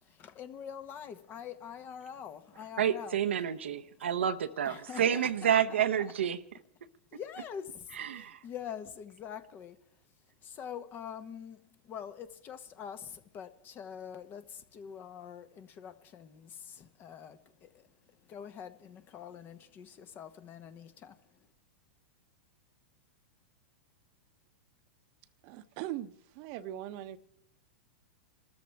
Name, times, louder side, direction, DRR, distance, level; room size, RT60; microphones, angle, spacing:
voice 1, 0.0-3.2 3.9-4.1 4.6-6.1 7.1-9.8 10.4-21.5, left 8 dB, 35° left, 1.1 m, -45 dB
voice 2, 2.8-6.4 8.0-8.4, right 9 dB, 85° right, 0.9 m, -29 dB
voice 3, 25.4-27.2, right 13 dB, 50° right, 0.9 m, -40 dB
27.5 x 13.5 x 3.5 m
hypercardioid pair, 125°, 6 cm